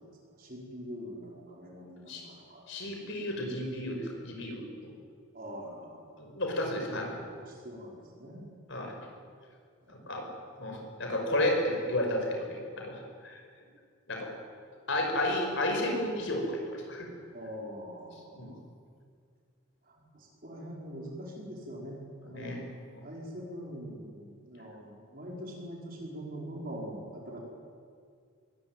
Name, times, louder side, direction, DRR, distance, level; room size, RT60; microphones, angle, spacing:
voice 1, 0.0-2.6 5.3-6.1 7.1-8.5 9.8-10.0 17.3-18.6 19.8-22.7 23.0-27.4, equal, 40° right, -1 dB, 5.2 m, -43 dB
voice 2, 2.7-4.6 6.2-7.2 8.7-8.9 9.9-10.2 10.6-12.5 12.8-13.4 14.1-14.3 14.9-17.1 18.3-18.5 22.2-22.6, left 1 dB, 55° left, 2 dB, 5.6 m, -32 dB
22.0 x 20.5 x 9.4 m, 2.1 s
head